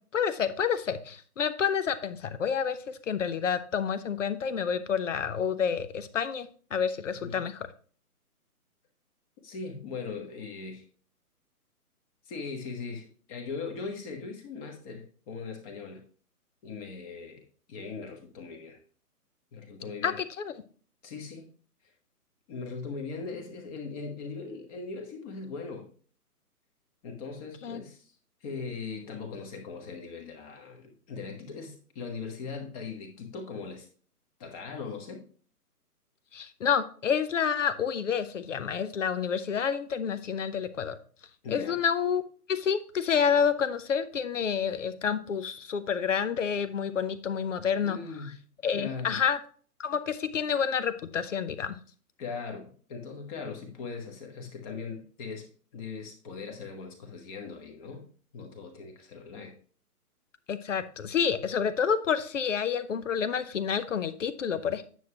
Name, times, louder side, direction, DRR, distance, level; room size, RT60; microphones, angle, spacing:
voice 1, 0.1-7.7 20.0-20.5 27.6-27.8 36.3-40.9 41.5-42.2 42.5-48.0 48.6-49.4 49.8-51.8 60.5-64.8, left 7 dB, 55° left, 0.8 m, -29 dB
voice 2, 9.4-10.8 12.3-16.0 16.6-17.4 17.7-18.8 19.5-20.2 21.0-21.5 22.5-25.9 27.0-28.1 28.4-33.9 34.4-35.2 41.4-41.8 47.8-48.4 48.8-49.2 52.2-55.5 55.7-58.0 58.3-59.5, left 4 dB, 25° left, 1.3 m, -39 dB
9.2 x 6.3 x 2.9 m
hypercardioid pair, 145°, 46 cm